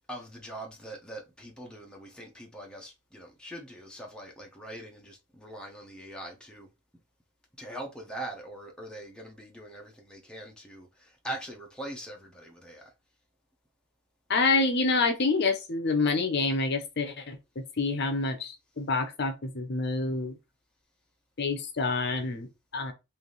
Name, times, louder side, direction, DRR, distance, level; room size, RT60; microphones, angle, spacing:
voice 1, 0.1-6.7 7.6-12.9, right 1 dB, 5° left, 0.8 m, -42 dB
voice 2, 14.3-20.3 21.4-22.5 22.7-22.9, left 3 dB, 55° left, 0.8 m, -27 dB
3.4 x 2.7 x 3.9 m
head